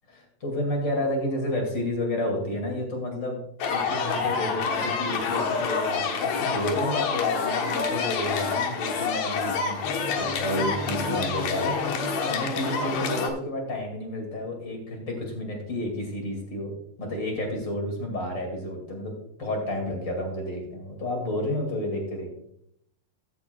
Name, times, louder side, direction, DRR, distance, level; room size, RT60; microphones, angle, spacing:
voice 1, 0.1-3.4 3.7-9.8 10.2-19.1 19.4-22.3, left 1 dB, 35° left, 2 dB, 2.3 m, -31 dB
sound 1, 3.6-13.3, left 5 dB, 65° left, 1.8 m, -27 dB
14.5 x 9.4 x 2.3 m, 0.72 s
omnidirectional pair, 4.4 m